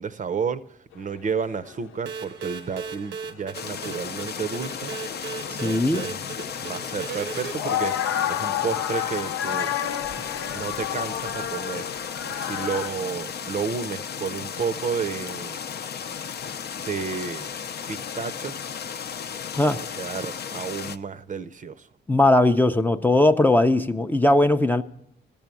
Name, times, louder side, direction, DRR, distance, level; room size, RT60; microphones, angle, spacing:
voice 1, 0.0-4.9 5.5-6.2 6.6-9.7 10.5-12.0 12.3-15.6 16.7-17.6 17.9-18.7 19.7-21.9, right 6 dB, 40° right, 0.6 m, -31 dB
sound 1, 0.9-1.0 1.4-1.5 1.7-2.1 2.5-3.9 4.3-12.9, left 10 dB, 80° left, 0.8 m, -31 dB
sound 2, 2.1-7.5, right 6 dB, 70° right, 0.8 m, -37 dB
sound 3, 3.5-21.0, left 7 dB, 55° left, 0.6 m, -35 dB
voice 2, 5.6-6.0 19.6-19.8 22.1-24.8, left 1 dB, 10° left, 0.5 m, -19 dB
13.5 x 7.1 x 9.0 m
cardioid pair, 90°, 20 cm